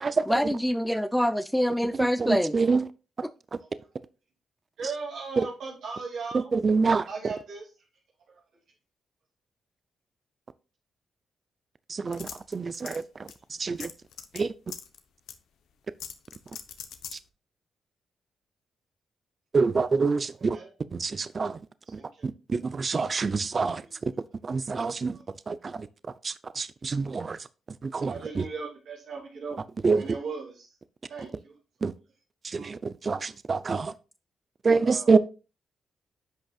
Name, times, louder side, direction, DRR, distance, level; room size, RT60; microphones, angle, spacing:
voice 1, 0.3-2.6 3.2-3.3, equal, 5° left, 0.6 m, -25 dB
voice 2, 2.2-2.8 5.4-5.5 6.5-7.0 11.9-13.3 13.6-13.9 14.3-14.5 19.5-20.6 20.9-21.6 22.2-23.8 24.4-25.2 25.5-25.9 26.2-27.4 27.8-28.4 29.8-30.0 31.8-31.9 32.4-33.9 34.6-35.2, right 4 dB, 45° right, 0.5 m, -26 dB
voice 3, 4.8-6.5 7.1-7.7 8.3-8.4 13.7-13.8 20.5-20.7 21.9-22.2 23.8-23.9 25.1-25.2 28.0-29.6 29.9-30.7 31.1-31.5 32.5-32.7 33.2-33.3 34.8-35.1, right 4 dB, 80° right, 2.7 m, -38 dB
sound 1, 12.1-13.0 13.3-13.4 13.8-14.4 14.7-15.0 15.3-15.4 16.0-17.2, left 8 dB, 85° left, 0.8 m, -40 dB
10.0 x 6.2 x 2.4 m
cardioid pair, 70°, 0 cm